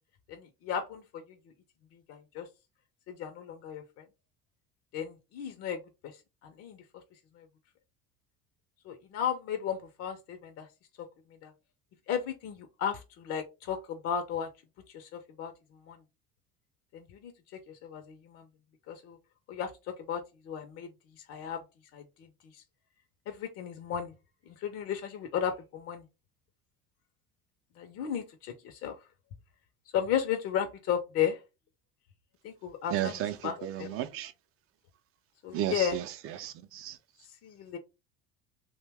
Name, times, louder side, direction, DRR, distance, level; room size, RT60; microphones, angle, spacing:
voice 1, 0.3-1.4 1.9-2.5 3.1-4.1 4.9-7.0 7.3-7.5 8.8-10.7 11.0-11.1 11.4-11.5 12.1-14.5 14.9-15.5 15.8-16.0 16.9-17.3 17.7-18.5 18.9-19.2 19.5-21.6 21.9-22.3 22.5-22.6 23.3-24.1 24.5-26.0 27.8-29.0 29.9-31.4 32.4-34.0 35.4-36.0 37.4-37.8, left 8 dB, 50° left, 0.5 m, -35 dB
voice 2, 32.9-33.3 33.9-34.3 35.5-35.7 36.4-36.9, right 12 dB, 45° right, 0.5 m, -32 dB
2.7 x 2.2 x 3.3 m
hypercardioid pair, 75°, 30 cm